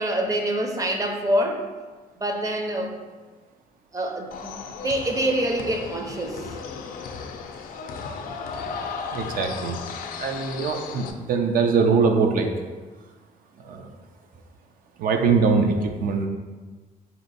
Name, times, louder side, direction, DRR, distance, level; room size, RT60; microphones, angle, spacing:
voice 1, 0.0-1.6 2.2-2.9 3.9-4.6 4.8-6.5, right 1 dB, 20° right, 2 dB, 0.5 m, -25 dB
sound 1, 4.3-11.1, left 5 dB, 70° left, 0.4 m, -35 dB
voice 2, 9.1-9.8 10.2-12.5 13.6-13.9 15.0-16.3, right 5 dB, 70° right, 4 dB, 0.5 m, -22 dB
3.4 x 2.8 x 4.0 m, 1.3 s
cardioid pair, 115°, 15 cm